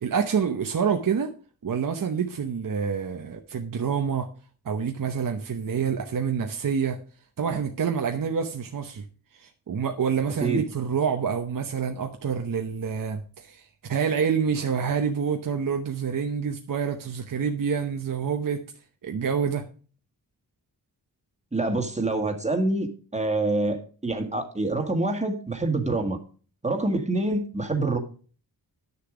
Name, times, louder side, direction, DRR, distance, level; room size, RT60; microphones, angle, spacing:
voice 1, 0.0-1.3 1.6-4.3 4.6-7.0 7.4-9.0 9.3-18.6 19.0-19.6, right 6 dB, 60° right, 0.9 m, -27 dB
voice 2, 21.5-26.2 26.6-28.0, right 2 dB, 20° right, 1.7 m, -26 dB
9.9 x 6.9 x 5.0 m
wide cardioid pair, 100°, 38 cm